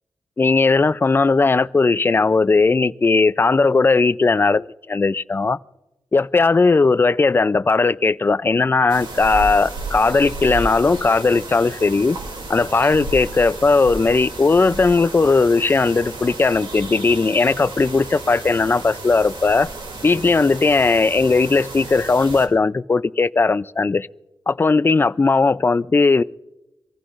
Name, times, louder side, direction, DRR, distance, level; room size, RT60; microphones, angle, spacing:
voice 1, 0.4-5.6 6.1-12.2 12.5-19.7 20.0-24.1 24.5-26.2, left 3 dB, 25° left, 0.4 m, -17 dB
sound 1, 8.9-22.5, right 2 dB, 70° right, 2.7 m, -33 dB
25.5 x 15.5 x 2.5 m
wide cardioid pair, 120°, 8 cm